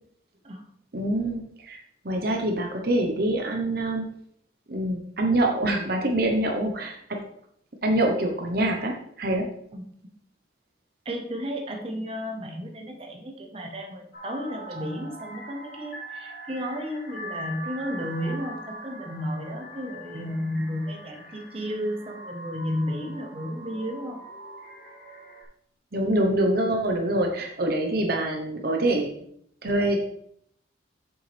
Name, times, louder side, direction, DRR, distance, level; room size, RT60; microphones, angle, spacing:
voice 1, 0.9-4.0 4.7-7.0 7.8-9.5 25.9-29.1 29.6-30.0, right 1 dB, 55° right, 2 dB, 1.0 m, -25 dB
voice 2, 11.0-24.2, equal, 30° right, 2 dB, 1.1 m, -33 dB
sound 1, 14.1-25.4, right 1 dB, 50° left, 2.3 m, -42 dB
7.9 x 7.3 x 3.4 m, 0.68 s
head